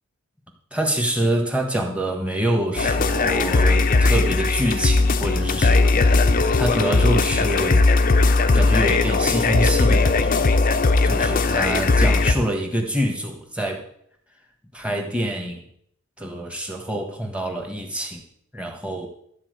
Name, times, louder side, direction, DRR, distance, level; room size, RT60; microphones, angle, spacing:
voice 1, 0.7-6.1 6.6-7.8 8.5-10.5 11.0-13.8 14.7-15.6 16.2-18.2 18.5-19.1, right 1 dB, 5° right, 2 dB, 1.6 m, -25 dB
sound 1, 2.8-12.3, left 3 dB, 40° left, 0.5 m, -18 dB
12.5 x 4.4 x 8.1 m, 0.67 s
head